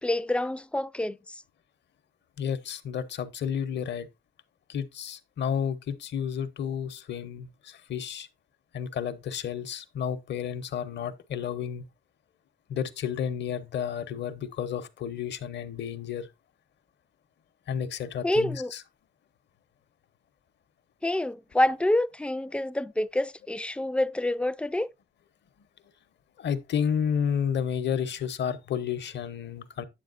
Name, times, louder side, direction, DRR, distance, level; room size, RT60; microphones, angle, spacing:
voice 1, 0.0-1.4 18.2-18.7 21.0-24.9, left 1 dB, 5° left, 0.3 m, -27 dB
voice 2, 2.4-4.1 4.7-8.3 8.7-11.9 12.7-16.3 17.7-18.8 25.6-25.7 26.4-29.9, left 8 dB, 60° left, 0.9 m, -31 dB
8.9 x 7.1 x 2.5 m
cardioid pair, 90°, 20 cm